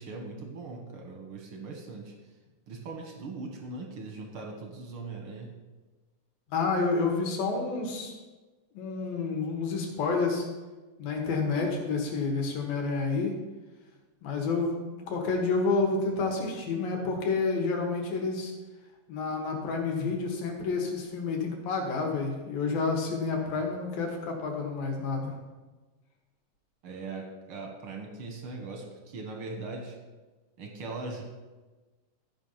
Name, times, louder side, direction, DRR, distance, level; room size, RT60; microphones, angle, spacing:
voice 1, 0.0-2.1 2.7-5.5 26.8-30.0 30.6-31.2, right 3 dB, 65° right, 2 dB, 1.3 m, -40 dB
voice 2, 6.5-8.1 8.7-10.5 11.0-13.4 14.2-18.5 19.1-25.3, left 4 dB, 75° left, 1 dB, 3.3 m, -29 dB
13.5 x 5.3 x 5.6 m, 1.2 s
omnidirectional pair, 4.1 m